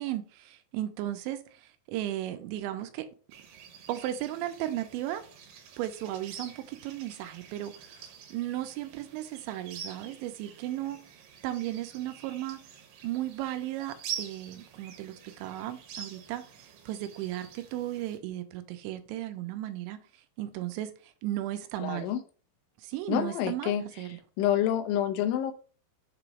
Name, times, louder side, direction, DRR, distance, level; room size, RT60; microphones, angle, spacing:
voice 1, 0.0-3.1 3.9-5.2 5.8-12.6 13.0-22.1 22.8-24.2, right 13 dB, 85° right, 3.0 m, -35 dB
sound 1, 3.3-18.2, right 8 dB, 70° right, 2.1 m, -46 dB
voice 2, 21.8-22.2 23.1-23.8 24.4-25.5, left 11 dB, 85° left, 3.2 m, -27 dB
7.6 x 3.0 x 4.9 m
omnidirectional pair, 5.3 m